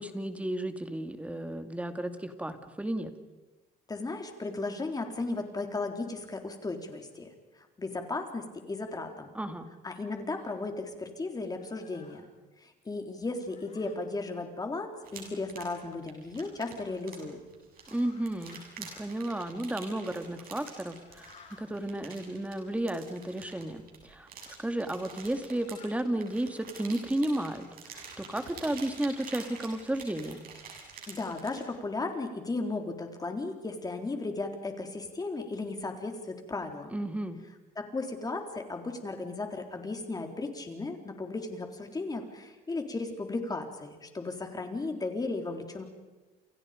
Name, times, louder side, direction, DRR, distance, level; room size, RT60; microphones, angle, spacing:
voice 1, 0.0-3.1 9.3-9.7 17.9-27.6 27.9-30.4 36.9-37.4, right 1 dB, 10° right, 8 dB, 2.3 m, -33 dB
voice 2, 3.9-9.3 9.8-12.2 12.6-17.4 31.1-36.9 37.8-45.8, left 3 dB, 20° left, 4 dB, 3.9 m, -35 dB
sound 1, 10.3-10.5 11.4-12.2 13.3-14.0 15.7-15.9 16.8-17.0 17.7-18.6 20.4-21.7 23.5-23.6 24.4-24.6 25.4-25.9, left 5 dB, 40° left, 7.6 m, -57 dB
sound 2, 15.0-31.7, right 5 dB, 60° right, 7.6 m, -48 dB
29.5 x 28.5 x 5.2 m, 1.2 s
cardioid pair, 110°, 17 cm